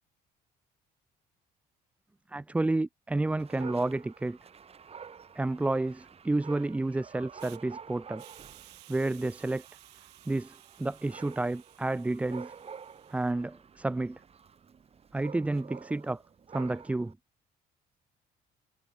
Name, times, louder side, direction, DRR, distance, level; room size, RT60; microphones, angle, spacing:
voice 1, 2.3-4.4 5.4-8.2 8.9-9.6 10.3-10.5 10.8-12.5 13.1-14.2 15.1-16.2 16.5-17.1, right 2 dB, 10° right, 0.4 m, -30 dB
Dog, 3.4-17.1, right 6 dB, 35° right, 5.3 m, -49 dB
Hiss, 7.4-7.6 8.2-13.3, right 20 dB, 90° right, 7.1 m, -56 dB
cardioid pair, 110°, 17 cm